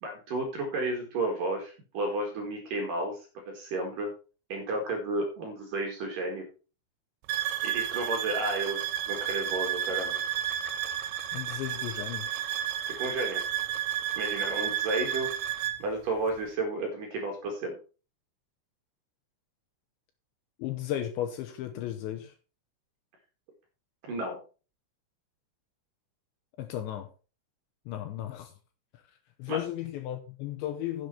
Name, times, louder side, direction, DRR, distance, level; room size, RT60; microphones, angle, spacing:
voice 1, 0.0-4.1 4.5-6.4 7.6-8.8 9.1-10.2 12.9-13.4 14.2-15.3 15.8-17.8 24.1-24.4 29.5-29.6, right 2 dB, 55° right, 2.8 m, -32 dB
sound 1, 7.3-15.8, right 11 dB, 85° right, 3.3 m, -32 dB
voice 2, 11.3-12.3 20.6-22.3 26.6-27.1 27.9-28.5 29.4-31.1, left 12 dB, 75° left, 2.8 m, -35 dB
10.5 x 7.9 x 4.3 m
omnidirectional pair, 5.9 m